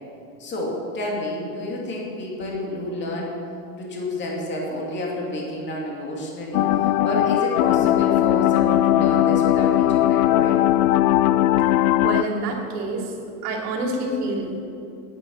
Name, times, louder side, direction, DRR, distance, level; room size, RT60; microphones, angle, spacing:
voice 1, 0.4-3.3 3.8-10.6, left 1 dB, 25° left, -2 dB, 2.6 m, -29 dB
sound 1, 6.5-12.2, left 13 dB, 65° left, 0.5 m, -19 dB
voice 2, 11.9-13.1 13.4-14.6, right 2 dB, 75° right, 0 dB, 3.0 m, -27 dB
9.3 x 9.3 x 8.9 m, 2.6 s
supercardioid pair, 155°, 47 cm